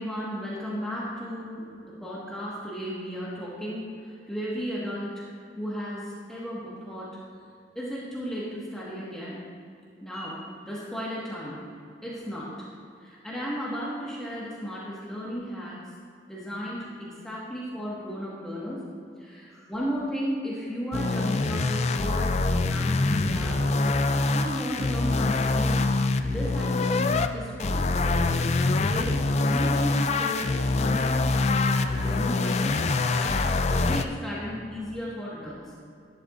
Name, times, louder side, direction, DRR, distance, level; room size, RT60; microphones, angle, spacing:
voice 1, 0.0-5.3 5.5-7.2 7.7-9.4 10.0-11.6 12.0-12.7 13.0-15.8 16.3-18.8 19.2-22.4 22.7-23.7 24.1-25.8 26.2-28.0 28.7-33.4 33.8-35.6, equal, 5° left, -8 dB, 1.6 m, -34 dB
sound 1, 20.9-27.3 27.6-34.0, left 3 dB, 35° left, 0.4 m, -25 dB
11.5 x 11.5 x 2.6 m, 2.4 s
head